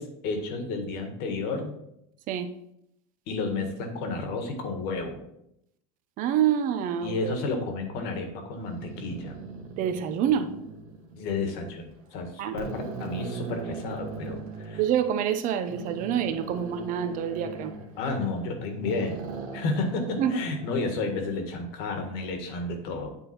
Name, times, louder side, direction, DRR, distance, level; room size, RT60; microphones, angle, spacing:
voice 1, 0.0-1.7 3.3-5.2 7.0-9.4 11.1-14.8 18.0-19.3 19.5-23.1, left 3 dB, 60° left, 5 dB, 1.6 m, -31 dB
voice 2, 6.2-7.3 9.8-10.5 12.4-12.6 14.8-17.7 20.2-20.4, right 9 dB, 50° right, 9 dB, 0.8 m, -27 dB
sound 1, 8.6-11.5 12.0-12.1 12.5-14.9 15.7-18.5 18.8-21.2, right 4 dB, 85° right, 1.5 m, -39 dB
9.1 x 3.6 x 4.3 m, 0.79 s
supercardioid pair, 115°, 18 cm